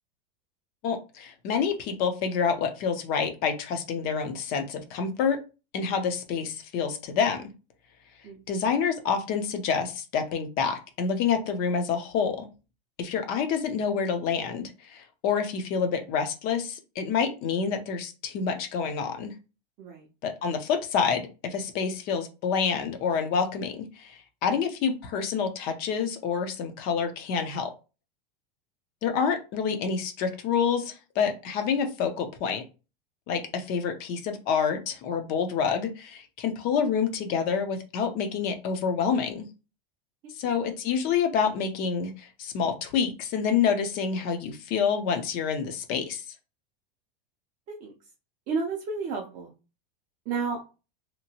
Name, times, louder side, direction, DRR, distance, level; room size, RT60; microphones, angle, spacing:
voice 1, 0.8-5.4 5.7-7.5 8.5-12.5 13.0-19.3 20.2-27.7 29.0-32.6 33.3-39.5 40.4-46.2, left 6 dB, 30° left, 7 dB, 0.5 m, -28 dB
voice 2, 40.2-40.6 47.7-47.9 48.5-49.5 50.3-50.6, right 4 dB, 25° right, -2 dB, 0.5 m, -32 dB
2.9 x 2.5 x 2.7 m, 0.31 s
supercardioid pair, 160°, 29 cm